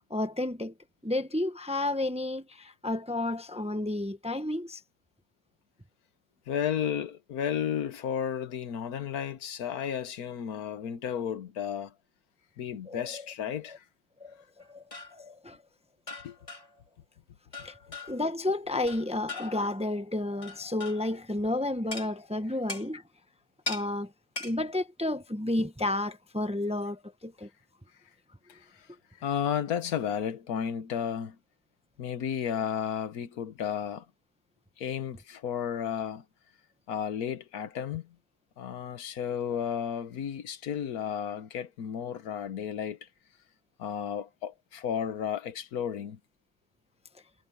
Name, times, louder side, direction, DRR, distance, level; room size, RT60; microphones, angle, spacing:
voice 1, 0.1-0.7 1.0-4.8 12.9-13.2 13.7-13.8 14.2-14.4 14.7-14.8 15.1-15.6 17.6-17.7 18.0-23.0 23.7-24.1 24.4-27.5, left 2 dB, 5° right, 0.8 m, -31 dB
voice 2, 6.5-11.9 12.6-13.8 16.2-16.4 28.5-28.9 29.2-31.4 32.0-34.1 34.8-36.2 36.9-38.1 38.6-43.1 43.8-46.2, left 8 dB, 80° left, 1.5 m, -33 dB
sound 1, 14.6-15.2 16.1-16.8 17.5-18.3 18.9-19.7 20.4-21.1 21.9-22.1 22.7-22.9 23.7-23.9 24.4-24.6, left 3 dB, 20° left, 2.8 m, -40 dB
omnidirectional pair, 1.6 m